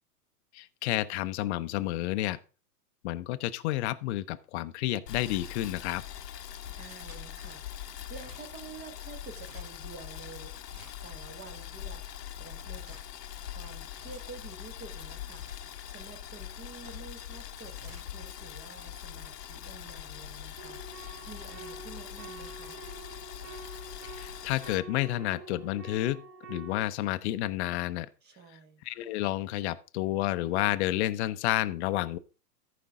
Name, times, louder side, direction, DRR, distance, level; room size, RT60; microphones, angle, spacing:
voice 1, 0.5-2.4 3.0-6.0 24.1-26.2 26.5-28.1 28.8-32.2, left 15 dB, 45° left, 0.7 m, -30 dB
Boiling, 5.1-24.7, left 11 dB, 90° left, 0.9 m, -43 dB
sound 1, 5.4-5.7 6.8-7.3 8.0-8.4 9.2-9.7 10.6-11.1 12.7-13.1 13.8-14.2 15.3-15.6 16.6-17.0 17.7-18.1, right 3 dB, 70° right, 2.4 m, -56 dB
voice 2, 6.7-10.5 11.0-13.0 13.4-22.8 28.2-28.8, right 5 dB, 20° right, 1.3 m, -49 dB
sound 2, 20.6-26.8, right 3 dB, 50° right, 2.9 m, -47 dB
14.0 x 5.2 x 3.6 m
hypercardioid pair, 130°, 47 cm